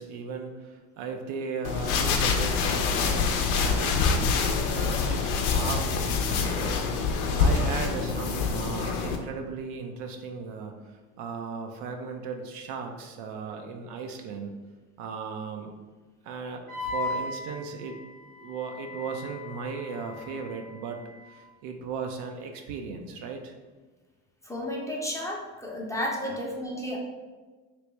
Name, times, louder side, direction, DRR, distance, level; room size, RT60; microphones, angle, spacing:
voice 1, 0.0-4.0 4.7-14.5 15.0-15.7 16.2-18.0 18.4-21.0 21.3-23.5 26.3-26.4, right 5 dB, 60° right, 4 dB, 0.6 m, -37 dB
sound 1, 1.6-9.2, left 5 dB, 75° left, 0.6 m, -25 dB
Wind instrument woodwind instrument, 16.7-21.3, left 3 dB, 85° right, 1.0 m, -38 dB
voice 2, 24.5-27.0, left 1 dB, 5° left, -3 dB, 0.6 m, -32 dB
3.1 x 2.9 x 3.2 m, 1.3 s
hypercardioid pair, 70°, 44 cm